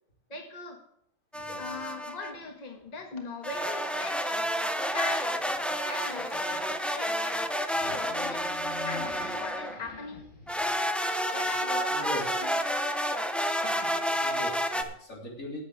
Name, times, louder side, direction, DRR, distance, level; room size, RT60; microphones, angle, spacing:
voice 1, 0.3-0.8 1.6-4.4 4.9-5.4 5.9-7.4 7.9-8.5 8.9-10.3 11.3-12.6, left 3 dB, 30° left, 2 dB, 1.6 m, -40 dB
sound 1, 1.3-2.3 3.4-9.8 10.5-14.8, equal, ahead, 0.5 m, -30 dB
sound 2, 5.7-6.6 7.7-10.8, left 3 dB, 55° left, 3.6 m, -44 dB
voice 2, 11.9-12.3 13.6-15.6, left 1 dB, 90° left, -3 dB, 3.7 m, -41 dB
10.0 x 8.6 x 6.3 m, 0.70 s
omnidirectional pair, 1.3 m